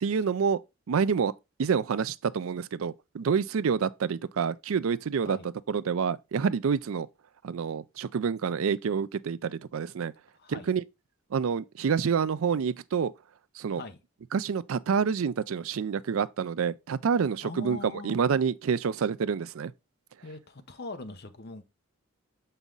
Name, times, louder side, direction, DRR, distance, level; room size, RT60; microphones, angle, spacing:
voice 1, 0.0-0.6 0.9-1.3 1.6-5.4 5.7-7.1 7.4-10.1 10.5-10.8 11.3-13.1 13.6-13.8 14.3-17.8 18.0-19.7, right 6 dB, 65° right, 0.4 m, -28 dB
voice 2, 10.3-10.7 13.7-14.0 17.4-18.2 20.2-21.6, left 3 dB, 45° left, 0.9 m, -41 dB
7.2 x 5.5 x 3.8 m
head